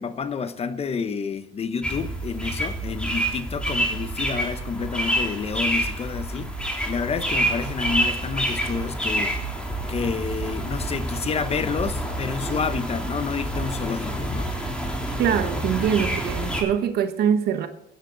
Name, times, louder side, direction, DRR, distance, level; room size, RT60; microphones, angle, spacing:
voice 1, 0.0-9.4 9.9-14.5, left 5 dB, 35° left, 0.9 m, -29 dB
sound 1, 1.8-16.6, right 1 dB, 5° left, 3.2 m, -28 dB
voice 2, 15.2-17.7, right 8 dB, 70° right, 1.2 m, -23 dB
15.0 x 10.5 x 3.9 m
cardioid pair, 110°, 17 cm